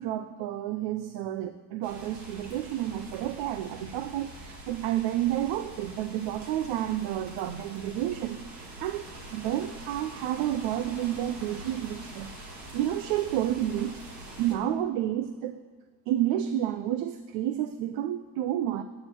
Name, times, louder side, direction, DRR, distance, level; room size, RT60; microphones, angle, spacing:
voice 1, 0.0-12.3 12.7-15.6 16.1-18.8, right 12 dB, 75° right, 10 dB, 0.6 m, -30 dB
sound 1, 1.8-14.5, right 1 dB, 40° right, 1.6 m, -45 dB
9.4 x 4.5 x 7.5 m, 1.5 s
cardioid pair, 150°, 43 cm